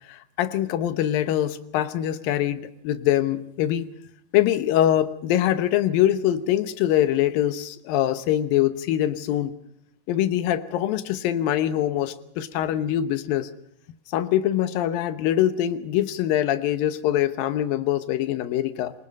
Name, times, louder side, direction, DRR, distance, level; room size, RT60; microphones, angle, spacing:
voice 1, 0.1-3.9 4.3-9.5 10.1-13.5 14.1-18.9, left 12 dB, 85° left, 11 dB, 2.8 m, -23 dB
28.0 x 22.5 x 5.3 m, 0.76 s
omnidirectional pair, 4.0 m